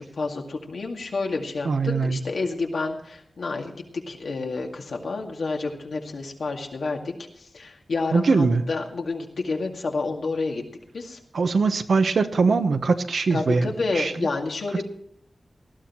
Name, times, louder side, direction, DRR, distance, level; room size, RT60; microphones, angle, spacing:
voice 1, 0.0-10.6 10.9-11.2 13.3-14.8, left 3 dB, 85° left, 1 dB, 2.2 m, -29 dB
voice 2, 1.6-2.2 8.1-8.6 11.3-14.1, right 4 dB, 80° right, 8 dB, 1.0 m, -22 dB
19.0 x 13.0 x 3.1 m, 0.72 s
wide cardioid pair, 120°, 0 cm